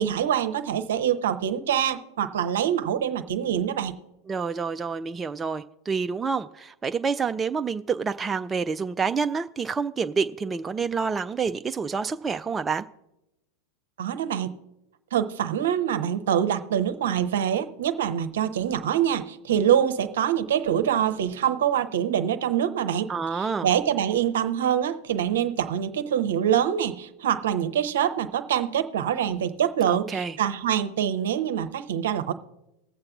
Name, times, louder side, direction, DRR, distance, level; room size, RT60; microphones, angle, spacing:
voice 1, 0.0-4.0 14.0-14.5 15.1-23.1 23.3-32.3, right 9 dB, 70° right, 0.7 m, -25 dB
voice 2, 4.3-12.9 23.1-23.7 29.9-30.4, right 5 dB, 20° right, 0.3 m, -28 dB
20.0 x 7.6 x 2.4 m
figure-of-eight pair, 90°, 0 cm